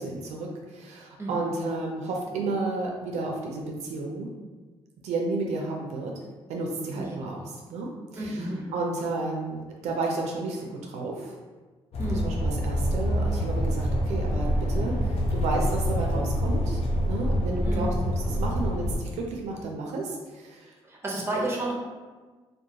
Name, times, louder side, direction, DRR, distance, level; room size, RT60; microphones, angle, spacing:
voice 1, 0.0-4.3 5.0-6.1 6.5-11.4 12.2-20.7, right 3 dB, 80° right, 0 dB, 0.4 m, -32 dB
voice 2, 1.2-1.5 7.0-7.2 8.2-8.8 12.0-12.4 17.6-18.0 20.8-21.7, right 1 dB, 20° right, -3 dB, 0.7 m, -31 dB
sound 1, 11.9-19.0, equal, 60° left, 0.5 m, -26 dB
2.3 x 2.2 x 2.7 m, 1.3 s
cardioid pair, 80°, 11 cm